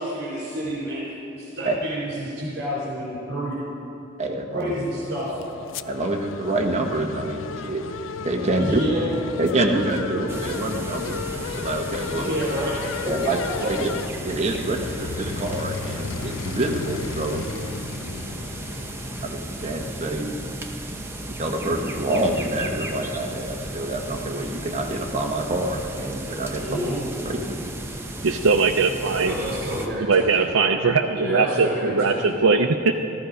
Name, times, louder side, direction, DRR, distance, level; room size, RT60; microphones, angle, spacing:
voice 1, 0.0-3.6 4.5-5.4 8.6-9.1 12.1-13.1 26.6-27.0 29.3-30.5 31.1-32.4, equal, 55° right, -5 dB, 3.5 m, -29 dB
voice 2, 4.2-4.7 5.9-7.8 8.2-8.8 9.4-12.3 13.0-13.9 14.2-17.5 19.2-20.4 21.4-26.7 27.2-27.6 29.2-29.3, right 1 dB, 35° right, 2 dB, 1.2 m, -26 dB
sound 1, 4.7-19.3, left 6 dB, 65° left, 0.4 m, -35 dB
sound 2, 10.3-29.9, right 1 dB, 10° right, 0.9 m, -35 dB
voice 3, 28.2-29.3 30.1-32.9, right 4 dB, 90° right, 3 dB, 0.6 m, -20 dB
14.5 x 14.0 x 5.2 m, 2.9 s
head